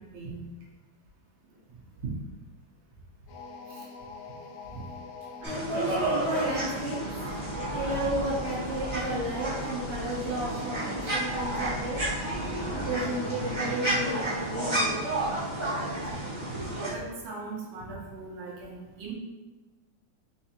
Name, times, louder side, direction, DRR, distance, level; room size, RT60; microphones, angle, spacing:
voice 1, 0.1-0.4 2.0-2.1 3.7-3.9 4.7-4.8 16.6-19.1, right 4 dB, 80° right, -4 dB, 1.7 m, -39 dB
sound 1, 3.3-15.1, left 4 dB, 80° left, 1.4 m, -44 dB
sound 2, 5.4-16.9, right 1 dB, 20° right, 0.8 m, -31 dB
voice 2, 5.4-7.3 7.7-12.0 12.7-15.1, right 1 dB, 55° right, -8 dB, 0.7 m, -33 dB
4.8 x 3.3 x 2.8 m, 1.2 s
omnidirectional pair, 2.2 m